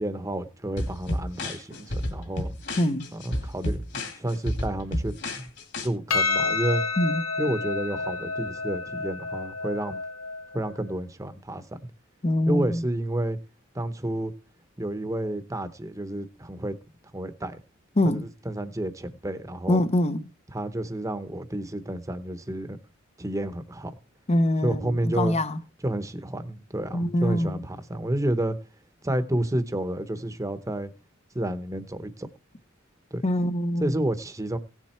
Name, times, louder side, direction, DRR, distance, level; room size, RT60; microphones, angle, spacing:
voice 1, 0.0-2.5 3.1-5.5 5.8-6.8 7.4-10.0 10.5-11.6 12.5-13.4 13.7-14.3 14.8-16.7 17.1-17.6 18.0-19.8 20.5-22.8 23.2-23.9 24.6-25.4 25.8-28.6 29.0-30.9 31.3-32.3 33.1-33.2 33.8-34.6, right 1 dB, 15° right, 0.9 m, -30 dB
sound 1, 0.8-5.9, left 1 dB, 55° left, 2.6 m, -31 dB
voice 2, 2.8-3.1 7.0-7.2 12.2-12.8 18.0-18.3 19.7-20.2 24.3-25.6 26.9-27.6 33.2-33.9, left 1 dB, 30° left, 0.7 m, -24 dB
Percussion, 6.1-10.7, left 3 dB, 85° left, 1.2 m, -29 dB
16.5 x 7.4 x 4.4 m
head